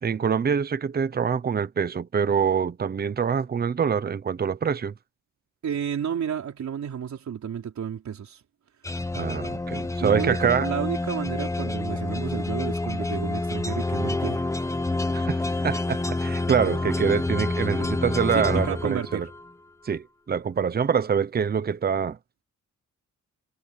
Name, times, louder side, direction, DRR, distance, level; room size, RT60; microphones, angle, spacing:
voice 1, 0.0-4.9 9.1-10.7 15.1-19.3 19.8-22.2, right 7 dB, 30° right, 0.8 m, -25 dB
voice 2, 5.6-8.4 10.0-14.5 18.3-19.3, right 8 dB, 60° right, 4.3 m, -31 dB
sound 1, 8.8-19.5, left 2 dB, 10° left, 0.9 m, -28 dB
wide cardioid pair, 170°, 31 cm